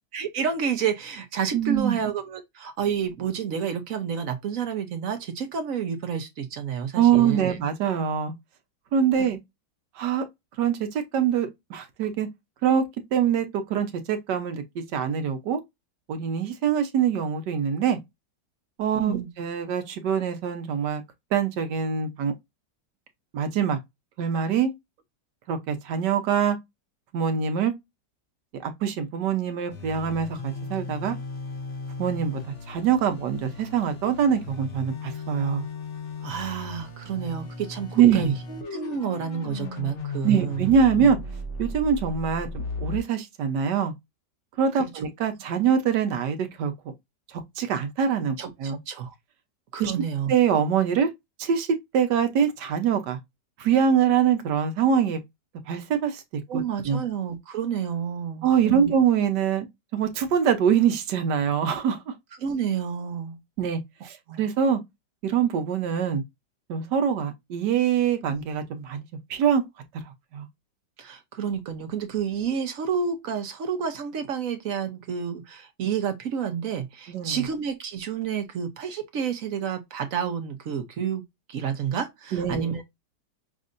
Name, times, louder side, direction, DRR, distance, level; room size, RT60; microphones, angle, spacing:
voice 1, 0.1-7.6 9.2-9.3 19.0-19.3 36.2-40.7 41.0-41.1 44.8-44.9 48.4-49.1 49.7-50.3 56.5-58.9 62.4-63.4 64.3-64.5 71.0-81.2 81.5-82.8, right 7 dB, 60° right, 1.0 m, -30 dB
voice 2, 1.5-2.0 6.9-8.3 8.9-9.4 10.0-10.2 10.6-12.3 12.6-12.8 13.1-15.6 16.1-18.0 18.8-21.0 21.3-22.3 23.3-23.8 24.2-24.7 25.5-26.6 27.1-27.7 28.6-31.2 32.0-35.7 38.0-38.3 40.2-41.2 41.6-43.9 44.6-46.7 47.3-48.8 49.8-49.9 50.3-51.1 51.4-51.7 51.9-53.2 53.6-55.2 55.7-56.2 56.5-57.0 58.4-59.7 59.9-62.1 63.6-64.8 65.2-66.2 66.7-69.0 69.3-69.6 70.3-70.5 77.1-77.4 82.3-82.8, right 7 dB, 75° right, 1.4 m, -24 dB
sound 1, 29.7-43.0, left 4 dB, 50° left, 1.2 m, -36 dB
6.2 x 2.6 x 2.5 m
omnidirectional pair, 1.9 m